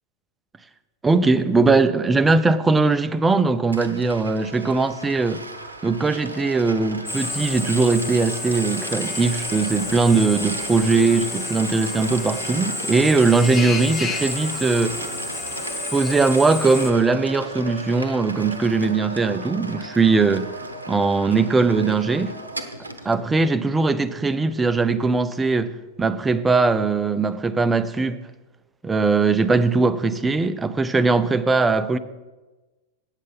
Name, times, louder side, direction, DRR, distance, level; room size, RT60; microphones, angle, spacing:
voice 1, 1.0-5.4 5.8-15.0 15.9-20.5 20.9-22.4 23.0-28.2 28.8-32.0, right 3 dB, 15° right, 0.5 m, -20 dB
sound 1, 3.7-23.2, right 2 dB, 80° right, 0.8 m, -35 dB
Drill, 7.1-16.9, left 3 dB, 15° left, 1.1 m, -31 dB
9.0 x 7.4 x 5.8 m
figure-of-eight pair, 90°, 0 cm